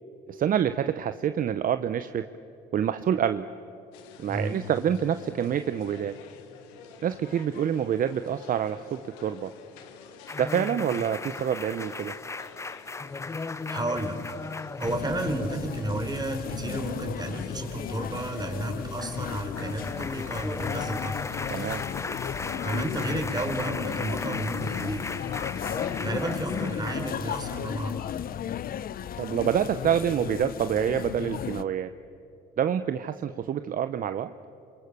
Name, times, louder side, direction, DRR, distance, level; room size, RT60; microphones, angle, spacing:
voice 1, 0.3-2.2 2.7-3.5 4.2-6.2 7.0-9.5 10.4-12.1 21.5-21.8 29.2-31.9 32.6-34.3, right 9 dB, 50° right, 11 dB, 0.8 m, -27 dB
sound 1, 3.9-21.9, left 8 dB, 85° left, 1.6 m, -50 dB
sound 2, 10.3-27.1, left 3 dB, 15° left, 0.5 m, -37 dB
voice 2, 13.7-14.2 14.8-21.2 22.6-25.1 26.0-28.0, right 2 dB, 20° right, 4 dB, 4.4 m, -32 dB
sound 3, 14.8-31.6, left 9 dB, 55° left, 0.7 m, -35 dB
27.5 x 23.0 x 6.8 m, 2.8 s
supercardioid pair, 70°, 19 cm